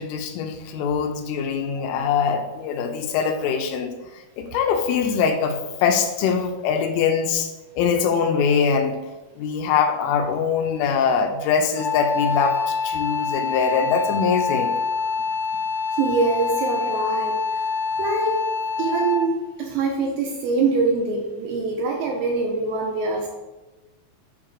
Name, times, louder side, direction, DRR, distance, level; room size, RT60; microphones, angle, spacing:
voice 1, 0.0-4.0 4.4-9.0 9.4-14.8, left 6 dB, 85° left, 5 dB, 3.1 m, -23 dB
Wind instrument woodwind instrument, 11.7-19.4, left 5 dB, 70° left, 2.1 m, -25 dB
voice 2, 15.9-17.7 18.0-18.4 18.8-23.3, right 4 dB, 85° right, 0 dB, 2.6 m, -24 dB
8.4 x 4.9 x 3.0 m, 1.1 s
omnidirectional pair, 5.6 m